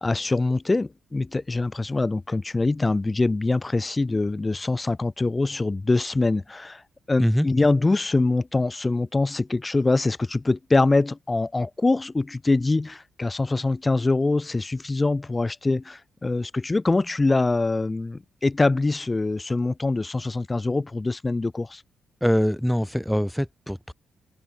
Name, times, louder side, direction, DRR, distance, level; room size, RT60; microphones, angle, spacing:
voice 1, 0.0-6.8 7.1-21.8, left 3 dB, 25° left, 1.3 m, -24 dB
voice 2, 22.2-23.9, equal, 5° left, 1.0 m, -23 dB
supercardioid pair, 50°, 0 cm